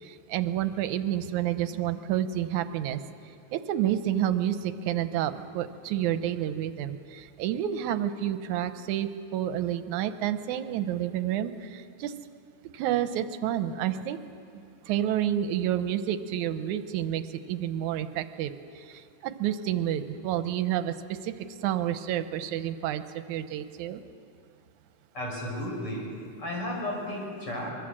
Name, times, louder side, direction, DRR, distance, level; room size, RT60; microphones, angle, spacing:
voice 1, 0.0-3.0 3.5-12.1 12.7-21.3 21.6-24.0, right 11 dB, 85° right, 11 dB, 2.2 m, -29 dB
voice 2, 25.1-26.1 26.4-27.7, left 1 dB, 45° left, -2 dB, 6.8 m, -33 dB
24.0 x 23.0 x 7.5 m, 2.4 s
omnidirectional pair, 3.3 m